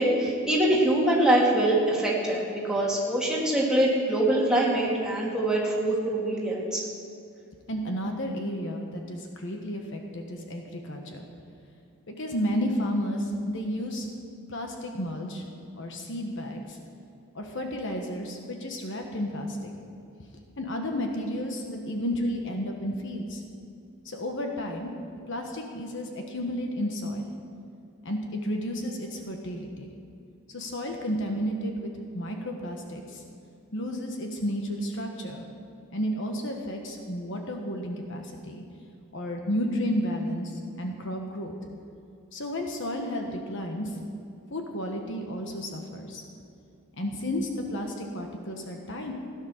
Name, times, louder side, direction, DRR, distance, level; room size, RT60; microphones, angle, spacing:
voice 1, 0.0-6.8, right 1 dB, 5° right, -5 dB, 2.5 m, -24 dB
voice 2, 7.7-11.2 12.1-14.1 14.5-15.4 15.8-16.8 17.3-19.7 20.6-23.4 24.0-24.9 25.3-27.3 28.0-29.9 30.5-33.2 33.7-35.5 35.9-38.6 39.1-41.5 42.3-44.0 44.5-46.2 46.9-49.1, equal, 55° left, 2 dB, 1.3 m, -32 dB
16.5 x 9.6 x 6.5 m, 2.6 s
head